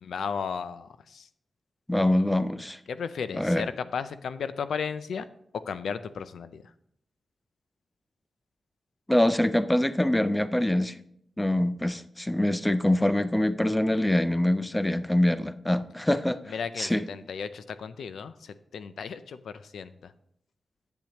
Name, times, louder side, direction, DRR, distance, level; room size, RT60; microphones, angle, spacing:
voice 1, 0.0-1.3 2.9-5.3 5.7-6.6 16.5-20.1, left 6 dB, 90° left, 13 dB, 0.5 m, -35 dB
voice 2, 1.9-2.8 3.3-3.7 9.1-11.0 11.4-17.1, left 1 dB, 10° left, 13 dB, 0.4 m, -24 dB
10.5 x 8.0 x 2.9 m, 0.72 s
wide cardioid pair, 135°, 0 cm